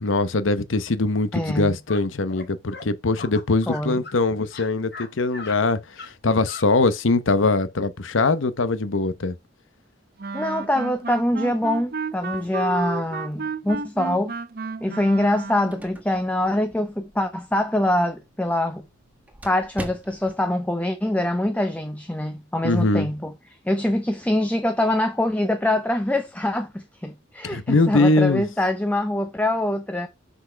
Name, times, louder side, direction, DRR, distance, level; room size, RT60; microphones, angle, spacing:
voice 1, 0.0-9.3 22.6-23.1 27.4-28.5, left 3 dB, 90° left, 0.9 m, -22 dB
voice 2, 1.3-1.8 3.7-4.0 10.3-14.3 14.8-18.9 19.4-23.3 23.6-30.1, left 1 dB, 5° left, 0.6 m, -24 dB
sound 1, 1.9-2.0 2.3-2.9 3.2-4.2 4.4-5.1 5.3-5.6 6.0-6.1 6.4-6.7, left 4 dB, 55° left, 1.8 m, -38 dB
Wind instrument woodwind instrument, 10.2-15.9, right 4 dB, 50° right, 0.6 m, -32 dB
sound 2, 15.3-20.5, right 1 dB, 10° right, 1.2 m, -43 dB
6.2 x 5.6 x 4.5 m
head